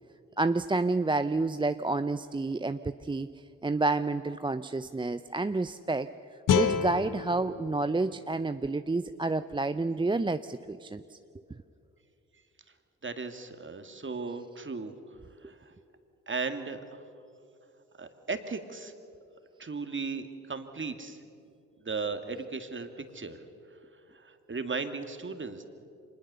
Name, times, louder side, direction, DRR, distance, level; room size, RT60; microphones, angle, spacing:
voice 1, 0.4-3.3 3.6-6.1 6.5-11.2, right 3 dB, 15° right, 11 dB, 0.6 m, -29 dB
sound 1, 6.5-9.6, left 8 dB, 65° left, 1.2 m, -31 dB
voice 2, 13.0-15.0 15.4-15.7 16.3-17.0 18.0-18.9 19.6-21.2 21.8-23.4 24.1-25.7, right 4 dB, 35° right, 7 dB, 2.2 m, -36 dB
25.0 x 20.5 x 6.9 m, 2.6 s
hypercardioid pair, 45°, 36 cm